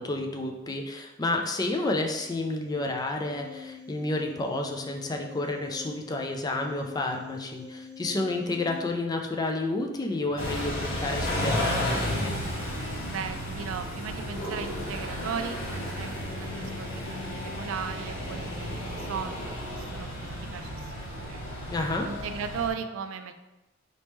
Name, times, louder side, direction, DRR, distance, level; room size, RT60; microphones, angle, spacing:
voice 1, 0.0-12.3 21.7-22.1, left 2 dB, 20° left, 3 dB, 0.4 m, -30 dB
sound 1, 2.1-8.9, left 5 dB, 60° right, 1.1 m, -45 dB
Car / Idling / Accelerating revving vroom, 10.4-22.7, left 1 dB, 85° left, 1.2 m, -33 dB
voice 2, 13.0-21.4 22.0-23.3, right 6 dB, 80° right, 9 dB, 0.3 m, -37 dB
sound 2, 14.1-15.4 15.6-20.0, right 1 dB, 60° left, 1.1 m, -43 dB
4.1 x 3.1 x 3.4 m, 1.0 s
head